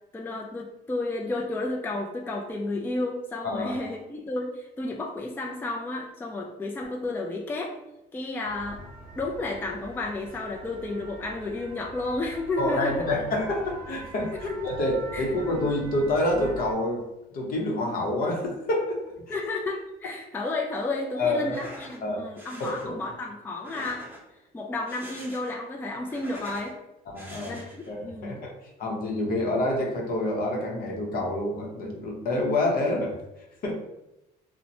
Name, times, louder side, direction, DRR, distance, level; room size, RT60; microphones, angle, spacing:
voice 1, 0.1-7.7 8.1-8.8 9.1-13.0 14.3-14.7 15.1-15.3 19.3-24.1 24.5-26.8 27.5-27.7 28.0-28.4, left 2 dB, 10° left, 0 dB, 0.3 m, -32 dB
voice 2, 3.4-3.9 12.6-17.0 17.3-19.4 21.1-21.6 22.0-22.2 22.6-23.0 27.1-27.6 27.9-28.5 28.8-33.2 33.6-33.7, left 1 dB, 60° left, 0 dB, 0.7 m, -27 dB
sound 1, 8.4-16.7, right 2 dB, 60° right, 0.6 m, -44 dB
sound 2, 21.4-22.0 22.4-22.9 23.5-24.4 24.8-25.6 25.9-26.7 27.1-27.9, equal, 15° right, 0.9 m, -44 dB
2.9 x 2.1 x 2.6 m, 0.91 s
cardioid pair, 110°, 17 cm